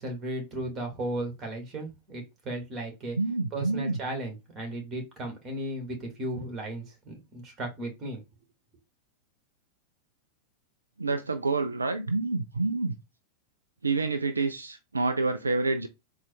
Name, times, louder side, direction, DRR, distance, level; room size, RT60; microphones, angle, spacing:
voice 1, 0.0-3.2 3.5-8.2, right 1 dB, 25° right, 1.9 m, -35 dB
voice 2, 3.2-4.0 11.0-13.0 13.8-15.9, right 3 dB, 80° right, 0.4 m, -28 dB
4.3 x 2.3 x 4.6 m
figure-of-eight pair, 90°, 0 cm